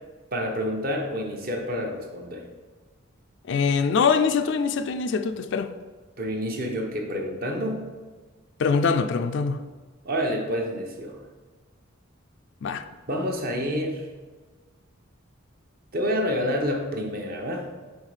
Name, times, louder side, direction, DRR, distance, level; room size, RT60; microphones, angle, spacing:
voice 1, 0.3-2.4 6.2-7.8 10.0-11.2 13.1-14.1 15.9-17.7, equal, 45° right, 0.8 m, -28 dB
voice 2, 3.5-5.7 8.6-9.6 12.6-12.8, left 5 dB, 55° left, 0.3 m, -23 dB
5.5 x 3.5 x 4.9 m
head